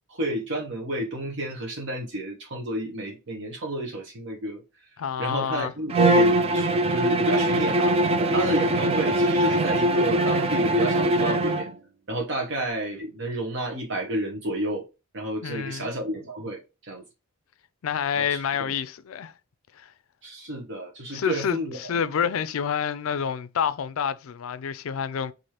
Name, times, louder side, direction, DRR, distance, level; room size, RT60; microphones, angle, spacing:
voice 1, 0.1-4.6 5.2-7.9 8.3-11.7 12.1-14.8 15.1-17.0 18.1-18.4 18.7-18.8 20.2-21.9, right 1 dB, 55° right, 0.8 m, -30 dB
voice 2, 5.0-5.7 15.4-15.9 17.8-19.3 19.7-19.9 21.1-25.3, left 7 dB, 70° left, 0.4 m, -28 dB
Bowed string instrument, 5.9-11.7, right 1 dB, 30° right, 0.3 m, -22 dB
4.7 x 2.5 x 2.9 m
head